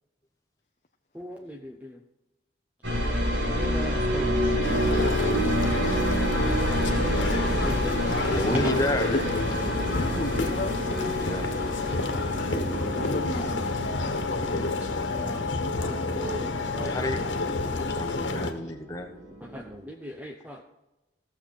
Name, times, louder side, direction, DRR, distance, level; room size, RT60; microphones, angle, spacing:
voice 1, 1.1-2.0 3.5-4.5 7.6-8.5 12.5-12.7 15.1-17.0 19.4-20.6, equal, 10° right, 3 dB, 0.7 m, -39 dB
sound 1, 2.8-18.6 18.9-19.7, equal, 75° right, 3.3 m, -29 dB
sound 2, 4.6-18.5, left 3 dB, 85° left, 1.3 m, -29 dB
voice 2, 8.3-9.2 11.2-11.5 16.8-19.2, left 1 dB, 20° left, 4 dB, 1.1 m, -31 dB
voice 3, 9.1-9.4 10.1-10.7 12.4-13.6, left 1 dB, 40° left, 2 dB, 0.8 m, -32 dB
15.5 x 7.3 x 4.3 m, 0.98 s
head